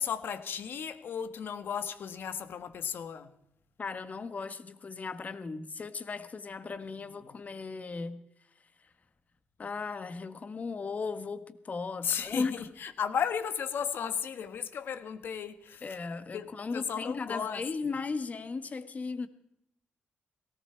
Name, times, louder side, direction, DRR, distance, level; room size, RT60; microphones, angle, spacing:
voice 1, 0.0-3.3 7.3-7.4 12.0-16.0 16.3-17.6, left 7 dB, 75° left, 1.5 m, -35 dB
voice 2, 3.8-8.2 9.6-12.5 15.8-19.3, left 4 dB, 45° left, 1.6 m, -36 dB
18.0 x 17.5 x 4.6 m
cardioid pair, 80°, 4 cm